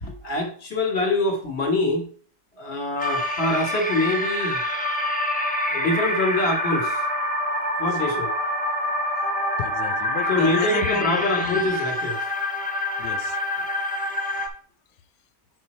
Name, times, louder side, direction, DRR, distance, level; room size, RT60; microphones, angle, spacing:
voice 1, 0.0-2.1 2.6-4.6 5.7-7.0 7.8-8.3 10.3-12.2, left 2 dB, 40° left, 1.6 m, -25 dB
sound 1, 3.0-14.5, left 1 dB, 10° left, 0.4 m, -26 dB
voice 2, 9.6-11.6 13.0-13.4, left 11 dB, 85° left, 1.2 m, -33 dB
5.6 x 5.4 x 4.3 m
omnidirectional pair, 1.8 m